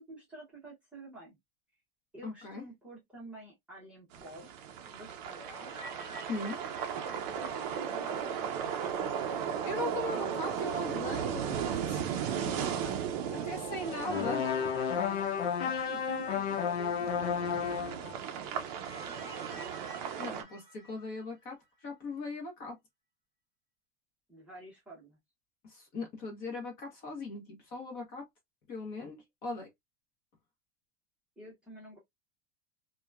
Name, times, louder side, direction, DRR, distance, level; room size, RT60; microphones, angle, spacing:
voice 1, 0.0-1.4 2.1-4.5 4.8-5.7 7.4-9.2 9.9-10.6 12.2-14.1 15.6-19.4 24.3-25.2 31.4-32.0, right 2 dB, 5° right, 0.8 m, -50 dB
voice 2, 2.2-2.6 6.3-6.6 9.7-12.1 13.5-14.4 20.2-22.8 25.6-28.3 28.7-29.7, left 2 dB, 30° left, 0.9 m, -39 dB
sound 1, 4.1-20.4, right 8 dB, 40° right, 0.5 m, -36 dB
sound 2, 4.7-9.0 9.3-9.4 13.0-16.1 18.1-21.5, equal, 10° left, 1.5 m, -50 dB
sound 3, 14.1-18.0, left 7 dB, 80° left, 0.7 m, -32 dB
2.8 x 2.2 x 2.3 m
supercardioid pair, 170°, 31 cm